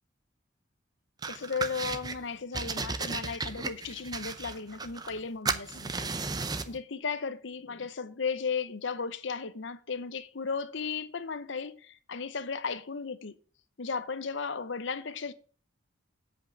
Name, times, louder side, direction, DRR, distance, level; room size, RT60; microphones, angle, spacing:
sound 1, 1.2-2.2 2.5-5.2 5.5-6.8, right 4 dB, 20° right, 0.5 m, -34 dB
voice 1, 1.3-6.1 6.7-13.4 13.8-15.3, left 5 dB, 70° left, 0.8 m, -35 dB
8.0 x 5.3 x 7.1 m
head